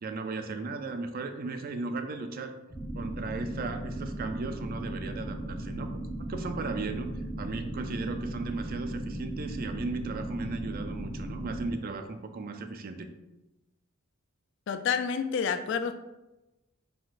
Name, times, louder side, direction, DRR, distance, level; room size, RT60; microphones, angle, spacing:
voice 1, 0.0-2.5 2.9-6.0 6.3-7.1 7.4-13.1, right 3 dB, 45° right, 7 dB, 0.4 m, -36 dB
sound 1, 2.7-11.7, right 1 dB, 20° left, 1.2 m, -37 dB
voice 2, 14.7-15.9, left 6 dB, 60° left, 9 dB, 0.4 m, -29 dB
4.8 x 3.8 x 2.5 m, 0.99 s
head